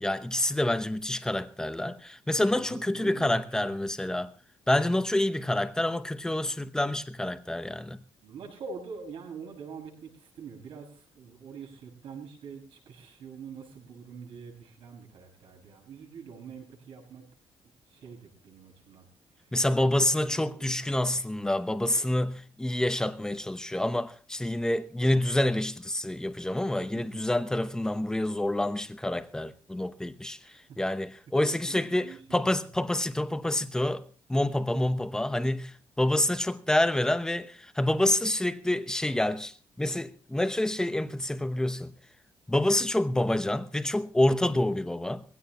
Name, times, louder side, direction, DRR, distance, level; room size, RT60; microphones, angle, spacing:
voice 1, 0.0-4.3 4.7-8.0 19.5-41.9 42.5-45.2, left 1 dB, 5° left, 0.9 m, -27 dB
voice 2, 2.5-3.8 8.2-17.2 17.9-19.1 19.4-19.5 19.8-20.1 20.5-20.9 21.9-22.1 26.9-27.3 30.5-30.8 31.3-32.4 34.7-34.9 44.5-44.6, right 5 dB, 70° right, 6.3 m, -45 dB
21.0 x 16.5 x 3.1 m
cardioid pair, 135°, 10 cm